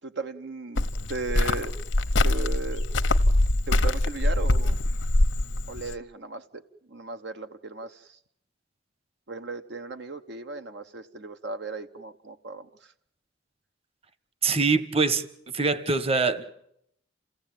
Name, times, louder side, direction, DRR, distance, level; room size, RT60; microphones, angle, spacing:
voice 1, 0.0-1.7 2.2-2.8 3.7-4.8 5.7-6.6 6.9-8.2 9.3-12.9, right 3 dB, 65° right, 0.9 m, -36 dB
Cricket, 0.8-5.9, left 1 dB, 85° left, 1.1 m, -23 dB
voice 2, 14.4-15.3 15.5-16.4, right 4 dB, 30° right, 1.2 m, -23 dB
28.0 x 16.5 x 9.0 m
head